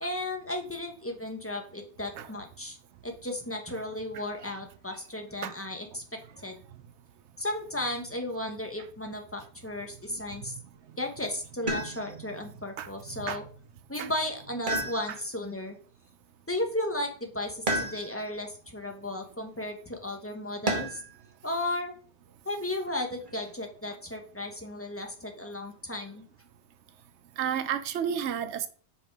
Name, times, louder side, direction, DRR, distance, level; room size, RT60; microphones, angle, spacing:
voice 1, 0.0-2.8 3.0-6.0 6.4-6.5 7.4-10.6 11.0-13.4 13.9-15.8 16.5-21.0 21.4-21.9 22.4-26.2, left 1 dB, 15° left, 1.1 m, -34 dB
voice 2, 4.1-4.5 5.4-5.5 12.8-12.9 13.3-13.4 14.0-14.1 15.1-15.2 27.4-28.7, right 8 dB, 85° right, 0.9 m, -32 dB
sound 1, 11.7-12.3 14.7-15.5 17.7-18.4 20.7-21.2 22.9-23.5, right 1 dB, 45° right, 1.4 m, -32 dB
5.7 x 4.9 x 4.7 m
omnidirectional pair, 1.1 m